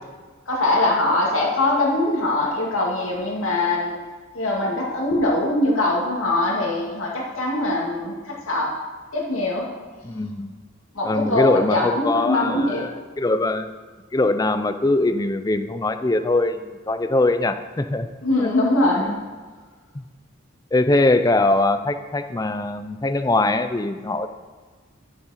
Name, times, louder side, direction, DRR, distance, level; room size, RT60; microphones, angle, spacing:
voice 1, 0.5-4.0 4.3-8.7 9.1-9.7 10.9-12.9 18.2-19.1, left 2 dB, 80° left, -3 dB, 2.4 m, -22 dB
voice 2, 10.0-10.5 11.0-12.9 13.2-13.7 14.1-18.1 18.4-18.5 19.0-19.2 20.7-24.3, left 2 dB, 20° left, 10 dB, 0.4 m, -22 dB
11.5 x 7.5 x 4.3 m, 1.4 s
head